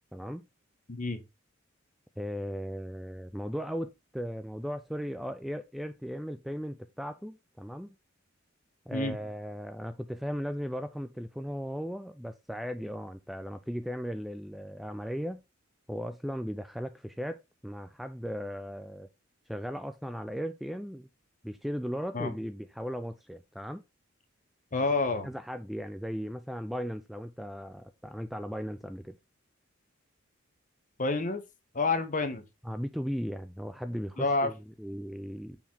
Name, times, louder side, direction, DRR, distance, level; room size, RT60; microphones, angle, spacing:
voice 1, 0.1-0.4 2.2-7.9 8.9-15.4 15.9-19.1 19.5-21.1 21.4-23.8 25.2-29.1 32.6-35.6, equal, ahead, 0.3 m, -37 dB
voice 2, 0.9-1.2 8.9-9.2 22.1-22.3 24.7-25.3 31.0-31.4 31.7-32.4 34.2-34.5, left 3 dB, 40° left, 1.1 m, -28 dB
5.7 x 4.4 x 4.2 m
head